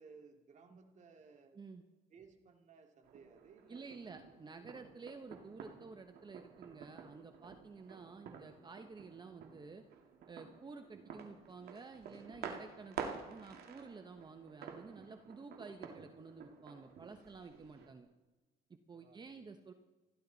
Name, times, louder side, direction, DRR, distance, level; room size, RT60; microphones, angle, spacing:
voice 1, 0.0-1.6 2.1-4.1 4.4-4.6 18.9-19.5, right 5 dB, 45° right, 4 dB, 2.5 m, -60 dB
voice 2, 1.5-1.8 3.7-9.8 10.3-18.1 18.7-19.7, right 4 dB, 25° right, 7 dB, 1.0 m, -52 dB
sound 1, 3.0-17.9, right 6 dB, 70° right, 2.2 m, -50 dB
29.5 x 11.5 x 4.1 m, 1.2 s
cardioid pair, 110°, 17 cm